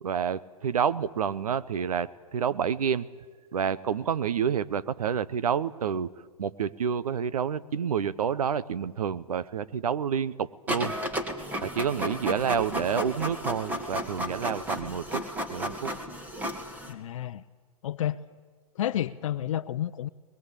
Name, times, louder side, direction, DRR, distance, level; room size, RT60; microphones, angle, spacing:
voice 1, 0.0-3.1 3.5-6.1 6.4-11.0 11.6-15.2 15.5-15.9, right 7 dB, 75° right, 16 dB, 0.9 m, -29 dB
Printer, 10.7-16.9, equal, 10° right, 2.0 m, -33 dB
voice 2, 16.9-17.4 17.8-18.2 18.7-20.1, left 11 dB, 60° left, 12 dB, 0.7 m, -30 dB
22.0 x 21.5 x 8.4 m, 1.5 s
hypercardioid pair, 135°, 19 cm